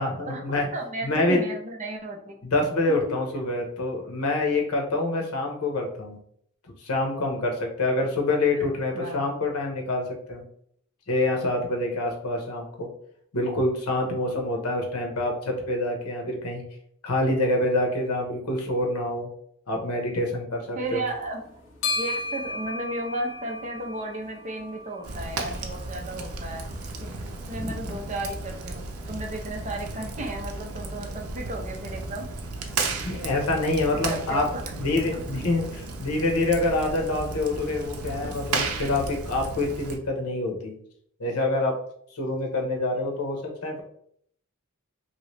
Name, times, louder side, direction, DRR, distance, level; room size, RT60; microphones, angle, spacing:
voice 1, 0.0-0.7 1.0-1.4 2.4-6.2 6.8-10.4 11.1-12.9 13.3-16.6 17.0-19.3 19.7-21.0 27.6-27.9 33.0-34.5 34.7-40.7 41.2-41.8 42.1-43.8, left 2 dB, 85° left, 1 dB, 0.9 m, -26 dB
voice 2, 0.7-2.5 8.5-8.7 8.9-9.3 20.7-21.4 21.9-26.7 27.0-27.1 27.5-32.3 33.7-34.6 35.1-35.2, right 1 dB, 35° right, 1 dB, 0.6 m, -34 dB
sound 1, 20.8-33.3, left 2 dB, 60° left, 0.7 m, -39 dB
Fire, 25.0-40.0, right 3 dB, 80° right, 0.6 m, -34 dB
3.0 x 2.8 x 3.1 m, 0.65 s
head